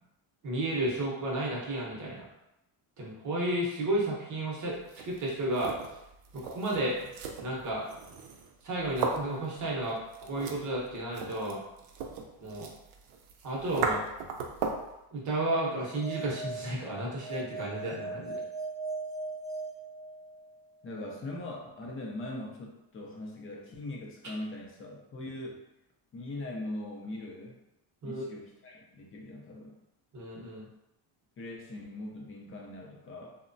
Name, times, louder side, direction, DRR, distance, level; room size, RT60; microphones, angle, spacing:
voice 1, 0.4-2.3 3.0-4.8 5.1-5.7 6.3-7.0 7.4-7.9 8.6-10.0 10.3-11.6 12.4-12.7 13.4-14.0 15.1-18.4 28.0-28.2 30.1-30.6, right 1 dB, 40° right, -4 dB, 0.7 m, -32 dB
sound 1, 4.7-14.9, right 4 dB, 70° right, 0.6 m, -38 dB
sound 2, 15.7-20.6, right 3 dB, 10° left, 0.8 m, -39 dB
voice 2, 20.8-25.6 26.1-27.6 28.0-29.7 31.4-33.4, left 1 dB, 30° left, -1 dB, 0.4 m, -41 dB
3.0 x 2.1 x 2.5 m, 0.88 s
cardioid pair, 155°, 50 cm